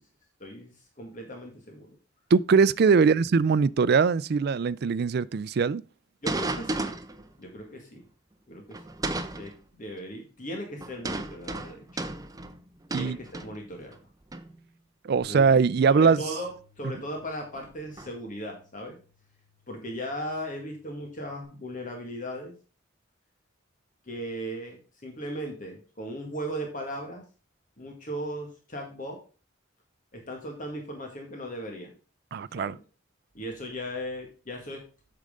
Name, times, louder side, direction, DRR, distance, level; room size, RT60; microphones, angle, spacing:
voice 1, 0.4-0.7 1.0-1.9 6.2-7.0 7.4-8.0 8.5-8.8 9.3-12.0 12.9-14.0 15.3-15.6 15.9-16.5 16.8-19.0 19.7-22.5 24.1-27.2 27.8-29.2 30.1-31.9 32.5-32.8 33.3-34.8, equal, 45° left, 1.9 m, -37 dB
voice 2, 2.3-5.8 12.9-13.2 15.0-16.2 32.3-32.8, right 5 dB, 55° right, 0.4 m, -21 dB
sound 1, 6.2-7.3 8.7-9.5 10.8-13.9 14.3-14.6 15.8-15.9 16.9-17.0 17.5-18.1, right 2 dB, 20° right, 0.7 m, -34 dB
Bass guitar, 15.2-21.4, left 5 dB, 15° left, 4.3 m, -61 dB
8.6 x 6.6 x 3.7 m
head